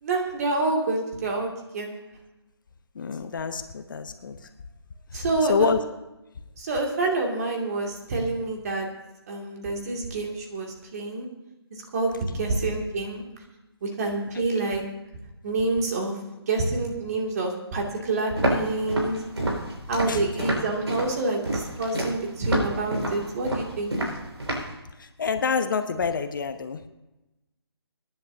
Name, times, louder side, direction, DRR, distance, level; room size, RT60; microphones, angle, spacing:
voice 1, 0.0-1.9 5.1-5.7 6.6-8.9 9.3-11.3 11.7-13.2 13.8-14.8 15.4-19.2 19.9-24.0, right 2 dB, 35° right, 1 dB, 2.4 m, -27 dB
voice 2, 2.9-4.4 5.1-5.8 14.3-14.7 20.1-20.6 25.0-26.8, left 5 dB, 50° left, 9 dB, 0.9 m, -28 dB
Walk footsteps, 18.4-24.7, right 1 dB, 80° right, 5.2 m, -28 dB
26.0 x 10.5 x 2.7 m, 0.98 s
figure-of-eight pair, 150°, 14 cm